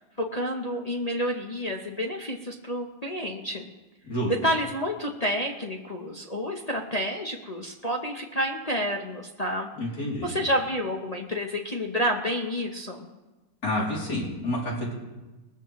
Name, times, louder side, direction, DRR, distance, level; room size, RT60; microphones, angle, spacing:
voice 1, 0.2-3.6 4.2-9.7 10.2-13.1, equal, 40° left, 1 dB, 0.6 m, -29 dB
voice 2, 9.8-10.3 13.6-14.9, left 1 dB, 55° left, -4 dB, 3.6 m, -29 dB
20.0 x 13.5 x 3.1 m, 1.1 s
omnidirectional pair, 2.0 m